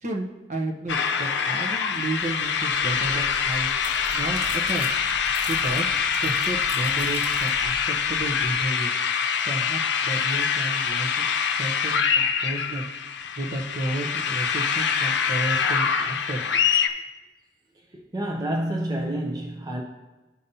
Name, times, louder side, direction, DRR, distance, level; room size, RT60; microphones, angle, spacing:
voice 1, 0.0-3.7 4.1-4.9 5.5-5.9 6.2-7.7 8.1-8.9 9.5-12.8 13.4-16.5, right 2 dB, 45° right, 1 dB, 0.9 m, -32 dB
sound 1, 0.9-16.9, left 6 dB, 85° left, 0.6 m, -25 dB
sound 2, 2.6-8.7, right 1 dB, 75° right, 2.2 m, -41 dB
voice 2, 17.9-19.8, right 1 dB, 20° right, -1 dB, 0.6 m, -28 dB
13.5 x 5.2 x 2.8 m, 1.2 s
head